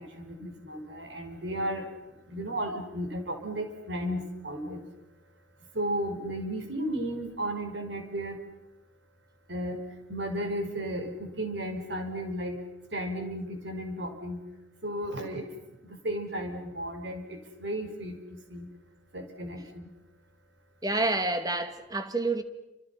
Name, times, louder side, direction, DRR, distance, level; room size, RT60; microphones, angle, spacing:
voice 1, 0.0-1.9 2.3-4.8 5.7-8.4 9.5-9.8 10.1-12.6 12.9-14.4 14.8-15.5 15.8-18.7 19.1-19.9, right 1 dB, 75° right, 5.4 m, -34 dB
voice 2, 20.8-22.4, right 2 dB, 20° right, 1.9 m, -28 dB
29.0 x 27.5 x 5.8 m
head